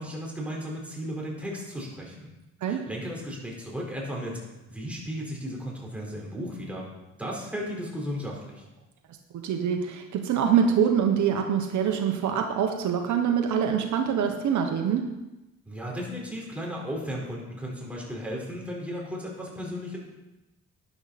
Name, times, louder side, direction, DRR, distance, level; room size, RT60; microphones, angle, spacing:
voice 1, 0.0-2.3 2.7-4.4 4.7-6.9 7.2-8.6 15.7-20.0, equal, 5° right, -3 dB, 4.6 m, -35 dB
voice 2, 9.3-15.1, right 7 dB, 70° right, 4 dB, 1.3 m, -25 dB
12.5 x 10.5 x 4.3 m, 1.0 s
cardioid pair, 90°, 30 cm